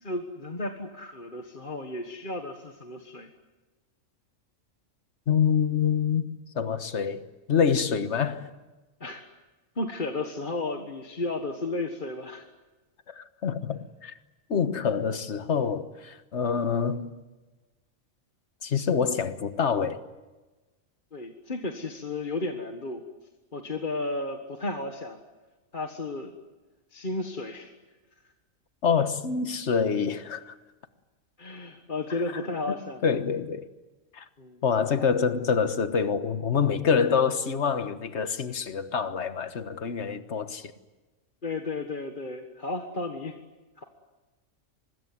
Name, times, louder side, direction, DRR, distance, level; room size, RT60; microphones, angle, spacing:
voice 1, 0.0-3.3 9.0-9.2 9.8-12.5 21.1-23.0 23.5-25.2 25.7-26.3 26.9-27.7 31.4-33.0 34.4-34.6 41.4-43.3 43.8-43.9, left 2 dB, 40° left, 1.7 m, -33 dB
voice 2, 5.3-6.3 6.5-7.2 7.5-8.5 13.1-14.1 14.5-17.1 18.6-20.0 28.8-30.5 33.0-33.7 34.1-34.2 34.6-40.7, left 6 dB, 60° left, 1.6 m, -26 dB
25.0 x 21.0 x 9.6 m
omnidirectional pair, 1.3 m